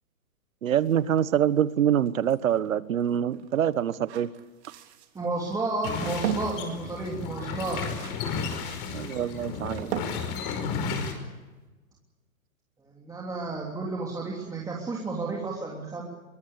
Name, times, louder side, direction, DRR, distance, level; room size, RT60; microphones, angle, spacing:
voice 1, 0.6-4.3 8.9-9.9, right 10 dB, 70° right, 17 dB, 1.3 m, -25 dB
sound 1, 0.8-11.6, right 10 dB, 50° right, 3.4 m, -40 dB
voice 2, 5.1-7.9 12.8-16.0, right 3 dB, 10° right, -3 dB, 3.2 m, -32 dB
sound 2, 5.8-11.1, left 5 dB, 40° left, 5.2 m, -33 dB
23.5 x 20.5 x 8.6 m, 1.2 s
hypercardioid pair, 135°, 42 cm